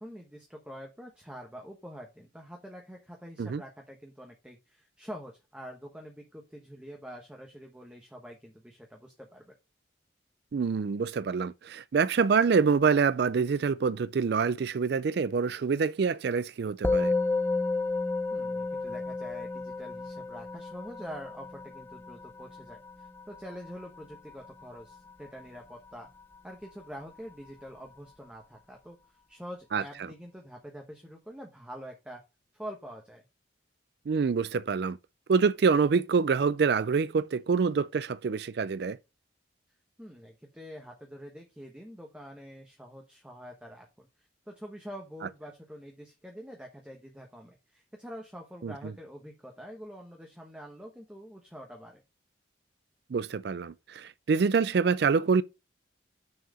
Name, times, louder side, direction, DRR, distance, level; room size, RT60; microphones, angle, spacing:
voice 1, 0.0-9.5 18.3-26.1 26.4-32.2 32.5-33.2 40.0-52.0, equal, 5° right, 1.1 m, -46 dB
voice 2, 10.5-17.1 29.7-29.8 34.1-35.0 35.3-39.0 48.6-48.7 53.1-55.4, right 5 dB, 60° right, 0.4 m, -26 dB
Musical instrument, 16.8-26.4, left 3 dB, 10° left, 0.5 m, -33 dB
6.4 x 4.7 x 6.3 m
head